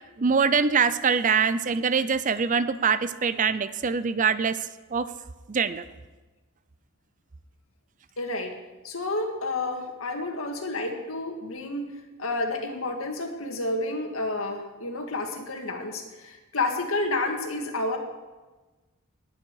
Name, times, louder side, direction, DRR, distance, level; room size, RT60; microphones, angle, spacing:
voice 1, 0.2-4.6 4.9-5.1 5.5-5.8, right 5 dB, 35° right, 14 dB, 0.5 m, -23 dB
voice 2, 8.2-8.5 8.8-11.9 12.2-18.0, left 2 dB, 70° left, 3 dB, 2.0 m, -30 dB
19.5 x 8.7 x 4.8 m, 1.2 s
head